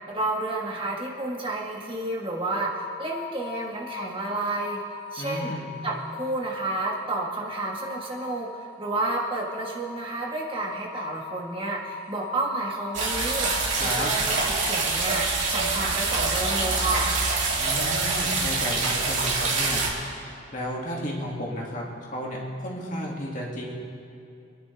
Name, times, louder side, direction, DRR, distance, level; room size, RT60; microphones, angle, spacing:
voice 1, 0.1-4.8 5.1-5.6 5.8-17.1, right 2 dB, 25° right, -3 dB, 1.5 m, -31 dB
sound 1, 2.4-14.7, left 5 dB, 25° left, 3.7 m, -41 dB
voice 2, 5.2-5.7 13.8-14.1 17.6-19.8 20.5-21.8 22.1-23.8, equal, 40° left, -3 dB, 2.4 m, -32 dB
sound 2, 12.9-19.9, right 3 dB, 65° right, 3.0 m, -25 dB
25.0 x 11.0 x 3.5 m, 2.5 s
head